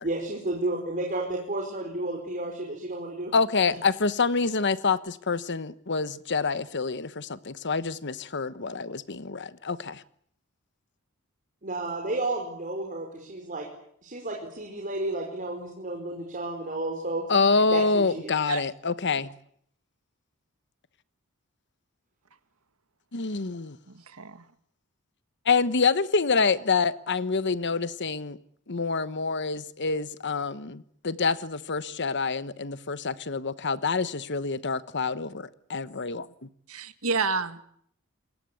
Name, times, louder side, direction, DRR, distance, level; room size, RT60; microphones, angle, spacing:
voice 1, 0.0-3.3 11.6-13.7 14.0-17.3 17.7-18.3, right 2 dB, 40° right, 4.9 m, -32 dB
voice 2, 3.3-10.0 17.3-19.3 23.1-23.8 25.5-28.4 28.7-36.5, left 4 dB, 55° left, 1.1 m, -27 dB
voice 3, 24.1-24.4 36.7-37.6, right 4 dB, 75° right, 1.9 m, -29 dB
28.0 x 22.0 x 8.5 m
head